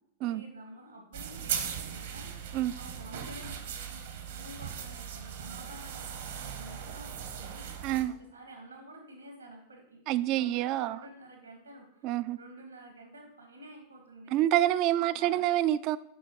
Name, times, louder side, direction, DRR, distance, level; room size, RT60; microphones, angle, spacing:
voice 1, 0.2-4.0 4.3-10.0 10.3-14.4 15.1-15.4, right 1 dB, 75° right, 2 dB, 1.7 m, -50 dB
sound 1, 1.1-8.0, right 8 dB, 60° right, 1.1 m, -39 dB
voice 2, 7.8-8.1 10.1-11.0 12.0-12.4 14.3-16.0, right 13 dB, 40° right, 16 dB, 0.4 m, -27 dB
6.0 x 5.7 x 6.3 m, 0.80 s
figure-of-eight pair, 90°, 0 cm